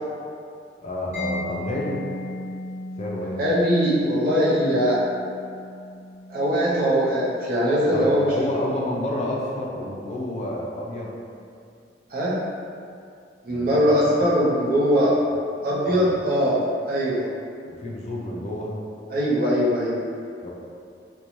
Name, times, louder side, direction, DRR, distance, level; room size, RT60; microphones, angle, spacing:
voice 1, 0.8-2.1 3.0-3.5 7.9-11.1 13.5-14.3 15.2-15.4 15.8-16.2 17.6-18.7 20.4-20.5, left 1 dB, 40° left, -4 dB, 0.4 m, -30 dB
Mallet percussion, 1.1-8.7, left 1 dB, 75° right, 1.0 m, -37 dB
voice 2, 3.4-5.0 6.3-8.3 12.1-12.4 13.4-15.1 15.6-16.6 16.9-17.3 19.1-20.0, equal, 55° right, -7 dB, 0.6 m, -21 dB
3.0 x 2.2 x 2.5 m, 2.4 s
head